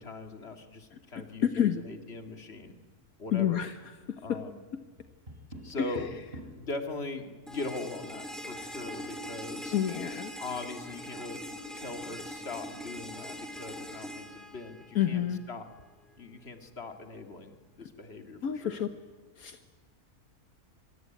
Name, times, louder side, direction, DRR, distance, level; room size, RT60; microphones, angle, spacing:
voice 1, 0.0-2.7 3.2-3.6 4.2-4.6 5.6-6.1 6.6-9.8 10.4-11.4 11.7-15.6 16.2-18.8, left 3 dB, 45° left, 6 dB, 2.6 m, -40 dB
voice 2, 1.4-1.8 3.3-3.7 4.1-4.4 5.8-5.9 9.7-10.3 14.9-15.4 18.4-18.9 19.4-19.6, left 10 dB, 75° left, 8 dB, 1.6 m, -28 dB
Tap, 5.0-6.7 8.7-9.4, right 1 dB, 40° right, 5.6 m, -46 dB
sound 1, 7.5-15.4, equal, ahead, 4.0 m, -42 dB
25.5 x 23.5 x 9.3 m, 1.4 s
omnidirectional pair, 1.5 m